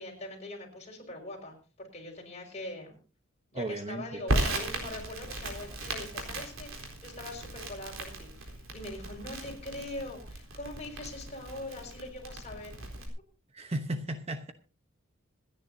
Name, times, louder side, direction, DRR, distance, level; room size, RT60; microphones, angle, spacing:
voice 1, 0.0-3.0 3.5-12.8, left 2 dB, 35° left, 0 dB, 5.3 m, -42 dB
voice 2, 3.5-4.2 13.5-14.5, right 1 dB, 30° right, 8 dB, 0.9 m, -35 dB
Crackle, 4.3-13.1, right 2 dB, 75° right, 4.0 m, -36 dB
26.0 x 10.0 x 2.7 m, 0.35 s
head